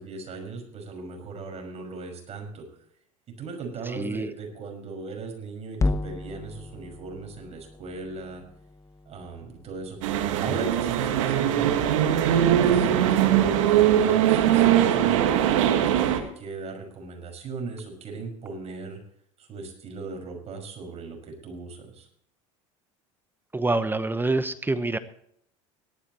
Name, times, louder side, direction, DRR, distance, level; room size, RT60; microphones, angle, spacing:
voice 1, 0.0-2.7 3.3-8.4 9.1-11.8 12.3-19.0 19.4-22.1, right 4 dB, 40° right, 3 dB, 5.8 m, -38 dB
voice 2, 3.9-4.3 23.5-25.0, right 2 dB, 10° right, 12 dB, 1.0 m, -26 dB
sound 1, 5.7-10.1, left 2 dB, 20° left, 0.9 m, -33 dB
sound 2, 10.0-16.2, right 10 dB, 75° right, 1.8 m, -21 dB
18.0 x 12.5 x 3.1 m, 0.65 s
hypercardioid pair, 85°, 17 cm